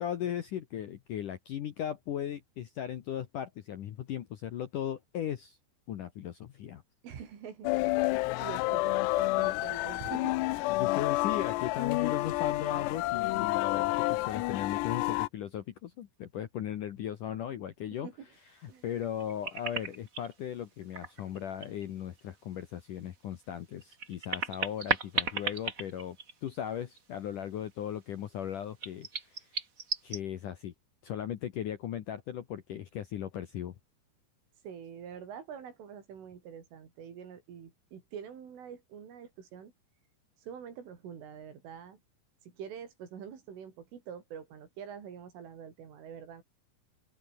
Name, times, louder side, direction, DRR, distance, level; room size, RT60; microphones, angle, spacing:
voice 1, 0.0-5.6 5.9-6.8 10.8-18.1 18.6-26.2 26.4-29.5 30.0-30.7 31.0-33.8, left 10 dB, 65° left, 2.1 m, -37 dB
voice 2, 7.0-7.8 8.4-10.3 12.0-12.2 18.0-18.3 18.7-18.8 34.6-39.7 40.4-42.0 42.5-46.4, right 8 dB, 85° right, 6.7 m, -45 dB
sound 1, 7.6-15.3, left 20 dB, 90° left, 2.5 m, -29 dB
sound 2, 19.0-20.3 20.8-21.8 22.2-22.3 23.7-26.7 27.0-27.1 28.8-30.2, right 4 dB, 40° right, 1.1 m, -35 dB
open air
omnidirectional pair, 5.6 m